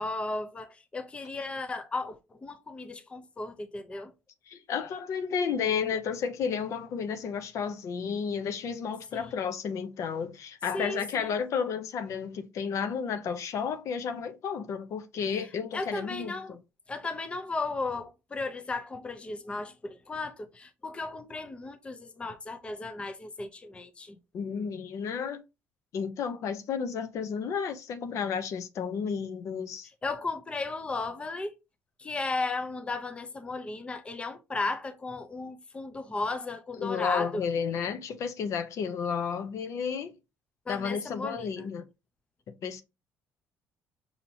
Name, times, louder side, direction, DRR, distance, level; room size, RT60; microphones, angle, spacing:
voice 1, 0.0-4.1 9.1-9.3 10.7-11.3 15.7-16.6 16.9-24.2 30.0-31.5 32.0-37.4 40.7-41.5, left 3 dB, 20° left, 0.5 m, -35 dB
voice 2, 4.5-16.6 24.3-25.4 25.9-29.9 36.7-40.1 40.7-41.8 42.6-42.8, left 6 dB, 60° left, 0.6 m, -32 dB
5.6 x 2.8 x 2.7 m
cardioid pair, 110°, 6 cm